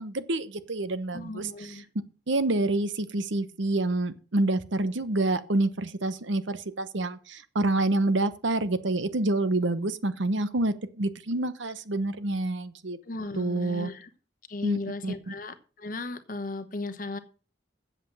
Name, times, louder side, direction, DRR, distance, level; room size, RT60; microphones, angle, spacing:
voice 1, 0.0-1.5 2.3-13.0 13.4-13.9 14.6-15.3, right 2 dB, 75° right, 13 dB, 0.9 m, -27 dB
voice 2, 1.1-1.9 13.0-14.1 14.5-17.2, left 2 dB, 45° left, 10 dB, 1.1 m, -36 dB
7.8 x 7.8 x 7.5 m, 0.37 s
head